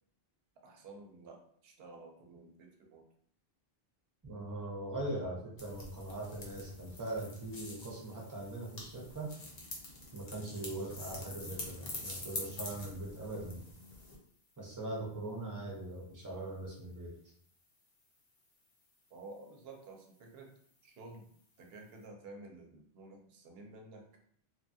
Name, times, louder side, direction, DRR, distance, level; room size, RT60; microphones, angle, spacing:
voice 1, 0.6-3.1 19.1-20.5 20.8-21.3 21.6-24.1, right 2 dB, 75° right, 3 dB, 0.8 m, -52 dB
voice 2, 4.2-9.3 10.1-13.6 14.6-17.1, right 1 dB, 25° right, -2 dB, 0.5 m, -41 dB
sound 1, 5.6-14.2, left 2 dB, 45° left, 0.7 m, -46 dB
2.9 x 2.2 x 2.6 m, 0.62 s
omnidirectional pair, 1.0 m